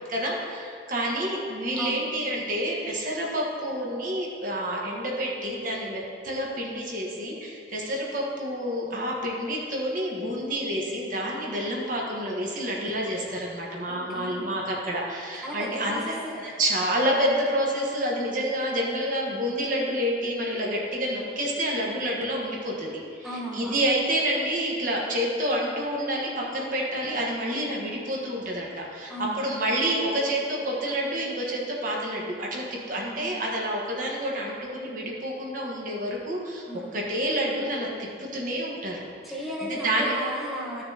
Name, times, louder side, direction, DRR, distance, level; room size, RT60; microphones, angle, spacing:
voice 1, 0.1-36.6 36.9-37.9 38.2-39.0 39.7-40.1, equal, 45° right, -3 dB, 1.3 m, -28 dB
voice 2, 13.9-14.6 15.4-16.6 23.2-23.7 29.1-29.5 33.2-33.4 36.7-36.9 39.2-40.8, equal, ahead, -7 dB, 1.2 m, -35 dB
13.5 x 6.6 x 2.9 m, 2.6 s
head